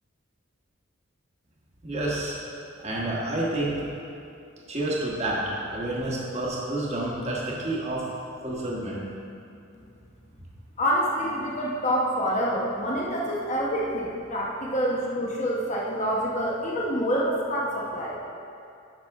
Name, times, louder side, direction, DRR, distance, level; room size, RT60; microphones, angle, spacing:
voice 1, 1.8-2.3 2.8-3.9 4.7-8.1 8.4-9.0, right 1 dB, 30° right, -5 dB, 1.3 m, -29 dB
voice 2, 10.8-18.2, equal, 35° left, -4 dB, 1.0 m, -27 dB
11.0 x 6.0 x 3.5 m, 2.5 s
head